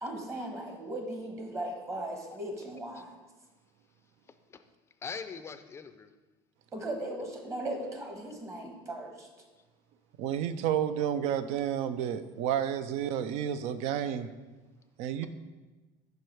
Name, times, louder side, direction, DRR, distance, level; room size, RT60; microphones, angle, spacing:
voice 1, 0.0-3.1 6.7-9.3, right 1 dB, 25° right, 3 dB, 1.1 m, -37 dB
voice 2, 5.0-6.1, left 5 dB, 25° left, 10 dB, 0.4 m, -41 dB
voice 3, 10.2-14.3 15.0-15.3, right 9 dB, 70° right, 12 dB, 0.4 m, -31 dB
5.4 x 4.8 x 4.5 m, 1.2 s
supercardioid pair, 120°, 12 cm